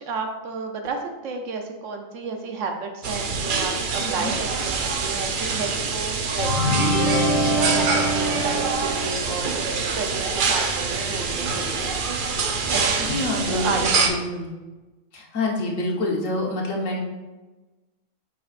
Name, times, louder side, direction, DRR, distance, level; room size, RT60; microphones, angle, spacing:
voice 1, 0.0-9.7 9.9-11.9 12.7-14.1, right 4 dB, 75° right, 4 dB, 1.1 m, -32 dB
sound 1, 3.0-14.1, right 4 dB, 50° right, 0.7 m, -25 dB
voice 2, 4.0-4.4 12.6-14.5 15.1-17.0, left 2 dB, 85° left, -1 dB, 1.5 m, -27 dB
sound 2, 6.4-9.2, equal, 65° left, 1.6 m, -23 dB
7.6 x 5.6 x 2.5 m, 1.2 s
omnidirectional pair, 1.3 m